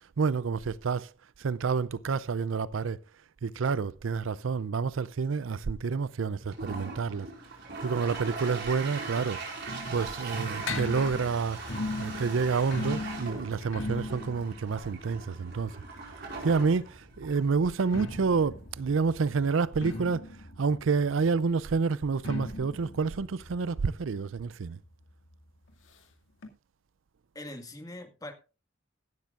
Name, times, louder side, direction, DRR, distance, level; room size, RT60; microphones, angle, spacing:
voice 1, 0.2-1.1 1.4-3.0 3.4-7.3 7.8-9.4 9.9-11.6 12.0-15.8 16.2-24.8, right 5 dB, 80° right, 0.5 m, -29 dB
Toilet flush, 6.4-19.5, right 3 dB, 55° right, 5.2 m, -41 dB
sound 1, 9.0-16.5 17.7-25.0 25.3-25.4 25.7-25.8 26.4-26.5, left 2 dB, 70° left, 2.2 m, -39 dB
voice 2, 27.4-28.3, left 1 dB, 20° left, 1.8 m, -42 dB
16.0 x 12.0 x 2.5 m
head